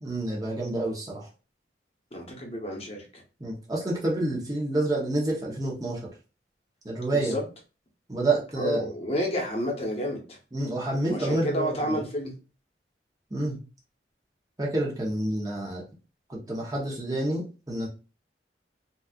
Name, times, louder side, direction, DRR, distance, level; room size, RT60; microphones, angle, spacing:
voice 1, 0.0-1.3 3.4-6.0 6.8-7.3 8.1-8.8 10.5-12.0 13.3-13.6 14.6-15.8 16.3-17.9, right 2 dB, 20° right, -4 dB, 0.8 m, -28 dB
voice 2, 2.1-3.2 7.1-7.4 8.6-10.4 11.1-12.3, equal, 35° left, 0 dB, 0.9 m, -30 dB
4.1 x 2.4 x 2.4 m, 0.33 s
head